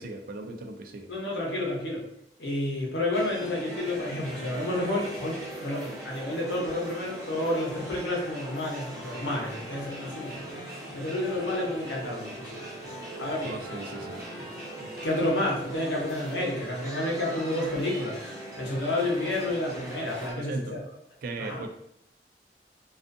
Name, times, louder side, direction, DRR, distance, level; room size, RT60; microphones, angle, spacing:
voice 1, 0.0-1.1 12.9-13.0 13.4-14.2 20.3-20.8 21.2-21.7, right 3 dB, 50° right, 4 dB, 0.3 m, -38 dB
voice 2, 1.1-2.0 2.4-10.6 10.9-12.6 13.2-13.6 15.0-18.2 18.6-20.8 21.4-21.6, left 1 dB, 85° left, -2 dB, 0.8 m, -30 dB
sound 1, 3.1-20.3, right 1 dB, 20° right, 0.7 m, -40 dB
2.4 x 2.4 x 2.5 m, 0.76 s
head